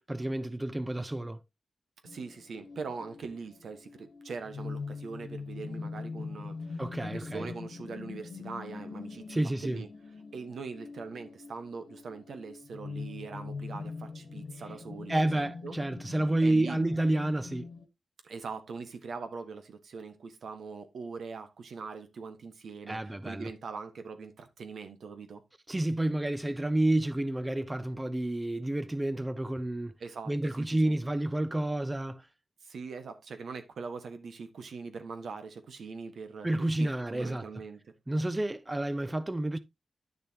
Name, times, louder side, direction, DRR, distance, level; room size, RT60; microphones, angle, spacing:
voice 1, 0.0-1.4 6.8-7.5 9.3-9.8 15.1-17.7 22.9-23.5 25.7-29.9 30.3-32.3 36.4-37.5 38.1-39.6, right 1 dB, 15° right, 0.5 m, -30 dB
sound 1, 2.0-17.8, left 4 dB, 80° left, 1.5 m, -43 dB
voice 2, 2.0-6.8 7.1-9.9 10.3-15.7 16.4-16.8 18.2-25.4 30.0-30.9 32.6-37.8, right 4 dB, 80° right, 1.4 m, -42 dB
10.5 x 6.8 x 2.9 m
wide cardioid pair, 105°, 0 cm